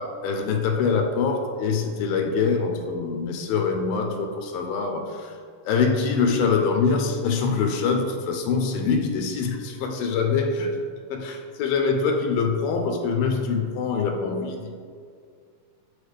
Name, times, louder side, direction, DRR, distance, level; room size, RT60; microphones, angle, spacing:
voice 1, 0.0-5.4 5.7-10.8 11.1-14.7, left 5 dB, 85° left, 4 dB, 2.3 m, -24 dB
6.4 x 4.8 x 3.3 m, 2.1 s
omnidirectional pair, 4.2 m